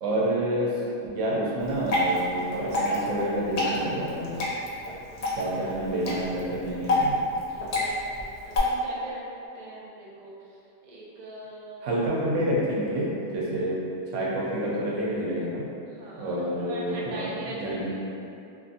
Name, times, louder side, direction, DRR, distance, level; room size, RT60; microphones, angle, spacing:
voice 1, 0.0-4.4 5.3-7.2 11.8-13.1 13.3-13.8 14.1-15.6 16.2-17.9, right 1 dB, 80° right, -5 dB, 1.0 m, -28 dB
Water / Drip, 1.6-8.6, left 1 dB, 75° left, 0.3 m, -29 dB
voice 2, 5.2-5.6 7.5-9.2 9.5-12.0 15.9-18.1, right 2 dB, 55° right, -6 dB, 0.5 m, -42 dB
2.6 x 2.5 x 2.4 m, 2.7 s
omnidirectional pair, 1.3 m